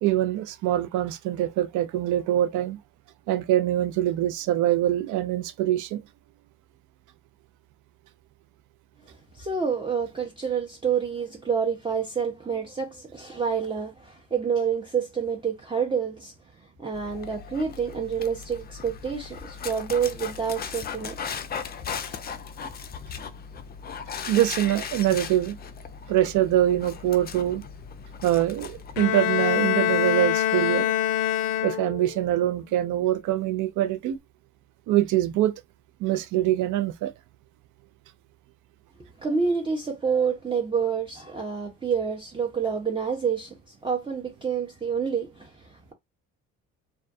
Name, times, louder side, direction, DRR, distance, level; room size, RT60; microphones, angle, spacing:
voice 1, 0.0-2.8 3.3-6.0 24.3-25.6 26.1-27.6 28.2-30.9 31.6-34.2 34.9-35.5 36.0-37.1, right 13 dB, 65° right, 0.4 m, -24 dB
voice 2, 9.3-16.3 16.8-21.5 39.2-45.9, right 6 dB, 15° right, 0.6 m, -28 dB
Dog, 16.9-29.0, left 6 dB, 30° left, 0.4 m, -37 dB
Bowed string instrument, 29.0-32.2, left 11 dB, 85° left, 0.5 m, -24 dB
2.2 x 2.2 x 2.6 m
supercardioid pair, 85°, 32 cm